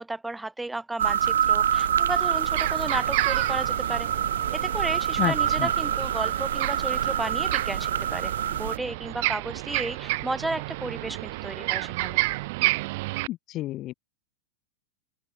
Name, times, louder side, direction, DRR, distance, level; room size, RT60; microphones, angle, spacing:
voice 1, 0.0-4.1 4.5-8.3 8.6-12.2, right 2 dB, 5° right, 3.4 m, -33 dB
sound 1, 1.0-8.8, right 9 dB, 65° right, 2.1 m, -26 dB
sound 2, 1.7-13.3, right 23 dB, 50° right, 3.5 m, -31 dB
voice 2, 5.2-5.7 13.3-13.9, left 15 dB, 35° left, 1.4 m, -30 dB
open air
figure-of-eight pair, 90°, 0 cm